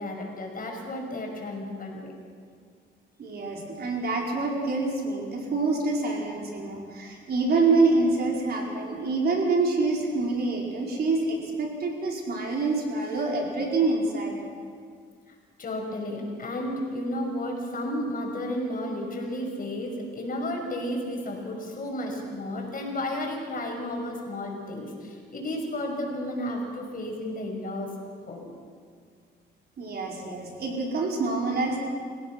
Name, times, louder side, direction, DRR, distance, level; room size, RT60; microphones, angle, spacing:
voice 1, 0.0-2.1 15.6-27.9 28.3-28.5, left 1 dB, 45° left, 1 dB, 6.0 m, -32 dB
voice 2, 3.2-14.4 29.8-31.8, right 3 dB, 55° right, -1 dB, 5.0 m, -26 dB
29.5 x 16.5 x 6.2 m, 2.1 s
cardioid pair, 90°, 20 cm